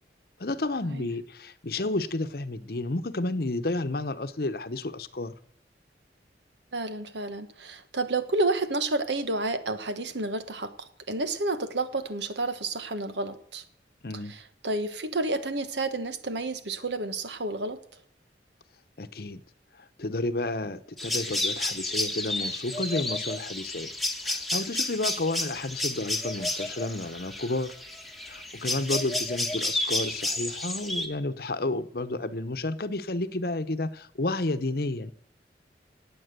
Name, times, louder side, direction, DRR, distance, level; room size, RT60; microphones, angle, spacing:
voice 1, 0.4-5.3 14.0-14.3 19.0-19.4 20.0-23.9 24.2-27.7 28.3-35.1, left 2 dB, 55° left, 11 dB, 0.9 m, -31 dB
voice 2, 6.7-13.6 14.3-17.8, right 2 dB, 80° right, 10 dB, 1.4 m, -30 dB
sound 1, 21.0-31.1, left 1 dB, ahead, 1.4 m, -31 dB
19.0 x 8.6 x 6.8 m, 0.63 s
head